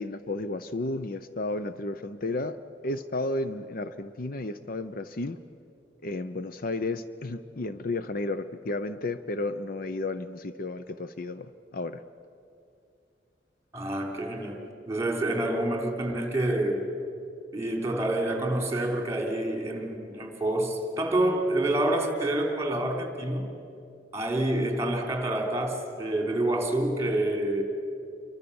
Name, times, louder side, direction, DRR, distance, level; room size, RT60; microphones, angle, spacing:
voice 1, 0.0-2.6 2.8-5.4 6.0-12.0, left 2 dB, 50° left, 11 dB, 0.7 m, -32 dB
voice 2, 13.7-14.6 14.9-16.8 17.5-23.5 24.1-27.6, right 1 dB, 15° right, 3 dB, 3.6 m, -27 dB
28.5 x 24.0 x 7.1 m, 2.5 s
head